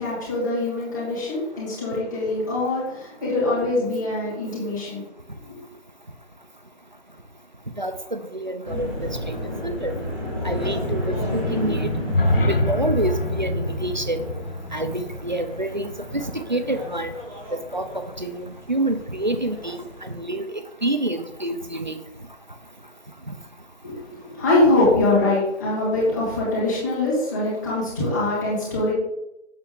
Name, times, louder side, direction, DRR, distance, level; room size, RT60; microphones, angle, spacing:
voice 1, 0.0-5.0 5.5-5.6 23.8-28.9, left 2 dB, 15° left, -9 dB, 1.9 m, -23 dB
voice 2, 7.8-8.9 9.3-10.0 10.4-11.9 12.5-14.2 14.7-17.1 17.5-19.8 20.0-22.0, right 1 dB, 40° right, 9 dB, 0.5 m, -27 dB
sound 1, 8.6-20.1, left 1 dB, ahead, 1.3 m, -31 dB
sound 2, 11.9-16.0, left 2 dB, 50° left, 0.8 m, -27 dB
7.0 x 6.9 x 3.6 m, 0.86 s
hypercardioid pair, 180°, 35 cm